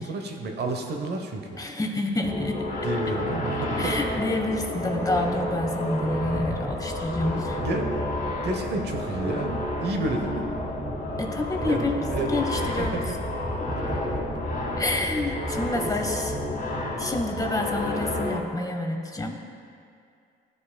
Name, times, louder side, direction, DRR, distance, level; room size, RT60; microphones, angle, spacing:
voice 1, 0.0-1.6 2.8-4.0 7.2-8.0 8.4-10.5 11.6-13.2 13.8-14.0 15.7-16.2, right 2 dB, 55° right, 3 dB, 0.9 m, -31 dB
voice 2, 1.6-2.7 3.8-7.6 11.2-13.0 14.8-16.3 17.0-19.4, left 2 dB, 20° left, 2 dB, 0.8 m, -28 dB
sound 1, 2.2-18.4, left 1 dB, 40° left, 1.6 m, -30 dB
sound 2, 6.1-16.4, right 1 dB, 20° right, 1.4 m, -38 dB
15.0 x 5.0 x 2.2 m, 2.3 s
cardioid pair, 90°, 20 cm